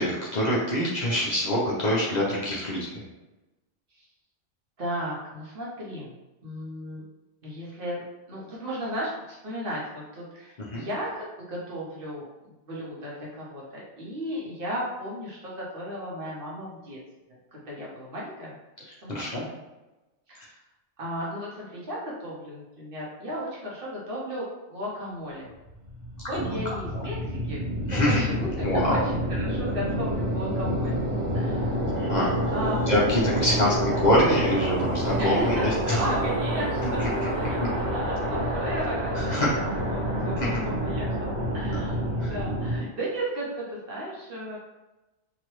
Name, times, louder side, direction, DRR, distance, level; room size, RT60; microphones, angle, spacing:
voice 1, 0.0-3.1 10.6-10.9 19.1-19.5 26.4-26.8 27.9-28.2 28.6-29.0 31.9-32.5 32.9-35.5 35.9-36.0 37.0-37.1 39.1-39.5 40.4-40.5 42.2-42.3, left 1 dB, 45° left, -6 dB, 0.7 m, -25 dB
voice 2, 4.8-6.1 6.4-7.0 7.4-17.0 17.5-18.6 18.9-19.5 20.3-20.6 21.0-25.5 26.3-29.0 29.3-31.0 31.3-31.8 32.5-32.9 33.5-34.0 35.2-44.6, equal, 55° right, -5 dB, 1.0 m, -35 dB
sound 1, 25.7-42.8, equal, 80° right, 1.5 m, -28 dB
2.9 x 2.6 x 3.0 m, 1.0 s
omnidirectional pair, 1.2 m